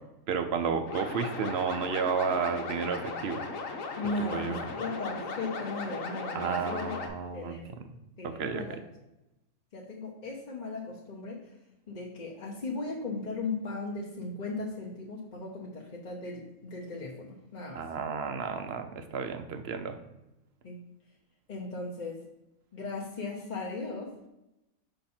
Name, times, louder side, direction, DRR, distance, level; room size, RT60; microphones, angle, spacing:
voice 1, 0.3-3.4 4.2-4.6 6.3-7.6 8.2-8.7 17.7-20.0, right 6 dB, 60° right, 8 dB, 0.7 m, -32 dB
sound 1, 0.9-7.1, left 4 dB, 65° left, 1.3 m, -37 dB
voice 2, 4.0-6.9 7.2-7.9 8.2-8.8 9.7-11.5 11.9-17.8 20.6-20.8 21.5-22.2 22.7-24.3, left 3 dB, 40° left, -2 dB, 0.8 m, -37 dB
5.5 x 5.3 x 4.3 m, 0.91 s
omnidirectional pair, 1.5 m